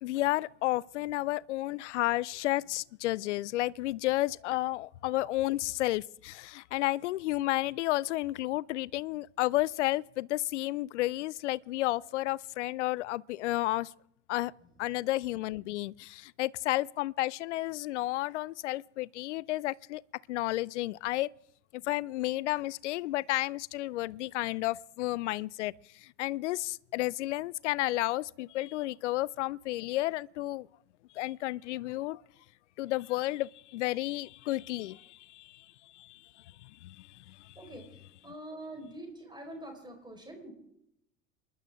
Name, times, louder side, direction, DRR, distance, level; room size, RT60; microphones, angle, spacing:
voice 1, 0.0-13.9 14.3-14.5 14.8-20.0 20.3-21.3 21.7-30.7 31.2-32.2 32.8-35.7 35.9-36.2 36.6-37.7, left 17 dB, 70° left, 0.5 m, -32 dB
voice 2, 38.2-40.5, right 1 dB, 10° right, 4.7 m, -45 dB
28.0 x 11.5 x 3.7 m
figure-of-eight pair, 70°, 38 cm